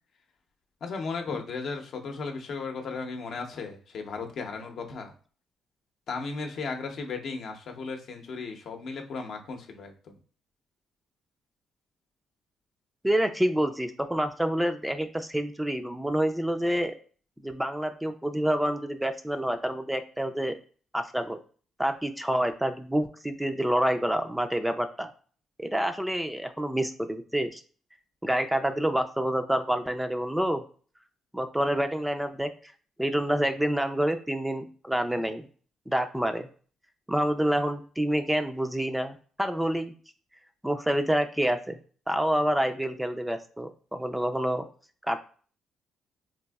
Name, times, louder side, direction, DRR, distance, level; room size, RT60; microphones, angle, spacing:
voice 1, 0.8-5.1 6.1-10.1, left 4 dB, 65° left, 4 dB, 0.7 m, -35 dB
voice 2, 13.0-17.0 17.4-20.5 20.9-21.4 21.8-25.1 25.6-27.6 28.2-30.6 31.3-32.5 33.0-35.5 35.9-36.5 37.1-39.9 40.6-41.8 42.1-44.6 45.0-45.2, right 1 dB, 5° right, 7 dB, 0.4 m, -27 dB
4.0 x 2.6 x 2.3 m, 0.41 s
cardioid pair, 90°, 0 cm